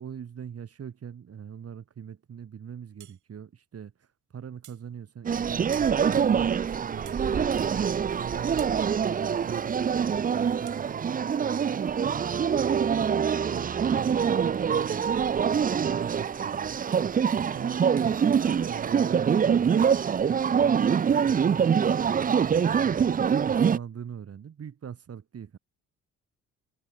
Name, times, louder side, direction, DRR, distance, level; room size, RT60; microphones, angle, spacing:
voice 1, 0.0-4.1 4.3-7.8 8.1-8.7 9.0-16.8 17.5-23.1 23.5-25.6, right 8 dB, 50° right, 6.5 m, -42 dB
sound 1, 3.0-3.2 4.6-4.9 5.7-6.0 7.0-7.3 8.6-8.8 10.7-10.8, right 12 dB, 75° right, 3.3 m, -49 dB
sound 2, 5.3-23.8, right 7 dB, 30° right, 0.5 m, -25 dB
cardioid pair, 90°, 30 cm